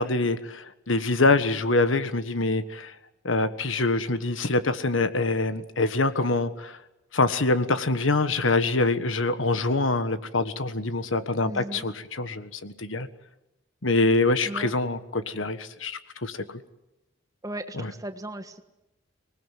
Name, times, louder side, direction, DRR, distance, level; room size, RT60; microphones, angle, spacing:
voice 1, 0.0-2.9 3.2-6.8 7.1-13.1 13.8-16.4 17.8-17.9, left 2 dB, 80° left, 12 dB, 1.5 m, -25 dB
voice 2, 11.4-11.9 14.4-14.7 17.4-18.6, right 1 dB, 20° right, 8 dB, 1.5 m, -37 dB
25.5 x 20.0 x 9.2 m, 0.95 s
head